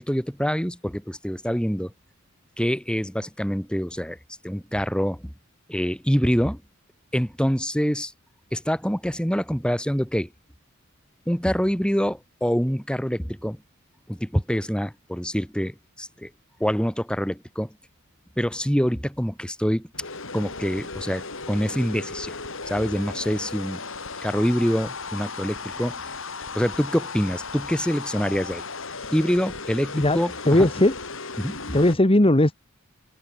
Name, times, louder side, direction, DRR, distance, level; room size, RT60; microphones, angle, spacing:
voice 1, 0.0-1.9 2.6-4.2 4.4-5.3 5.7-6.6 7.1-8.1 8.5-10.3 11.3-13.6 14.1-16.3 16.6-17.7 18.4-19.9 20.3-22.4 22.7-23.8 24.2-26.0 26.5-28.6 29.1-30.7 31.4-31.8, equal, 5° left, 5.8 m, -25 dB
sound 1, 19.9-31.9, left 4 dB, 70° left, 7.8 m, -36 dB
voice 2, 30.4-31.0 31.7-32.5, left 1 dB, 25° left, 1.9 m, -18 dB
open air
head